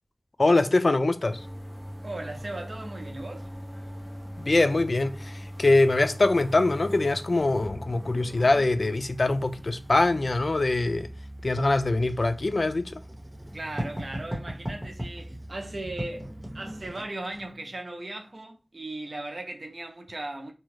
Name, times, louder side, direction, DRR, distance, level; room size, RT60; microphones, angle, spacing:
voice 1, 0.4-1.5 4.4-11.1 11.4-13.0, left 2 dB, 75° left, 0.3 m, -23 dB
sound 1, 1.2-16.9, equal, 15° right, 0.5 m, -42 dB
voice 2, 2.0-3.5 13.5-20.5, right 2 dB, 75° right, 0.6 m, -37 dB
Writing, 11.6-17.5, equal, 30° right, 1.1 m, -38 dB
2.8 x 2.3 x 3.2 m
wide cardioid pair, 55°, 0 cm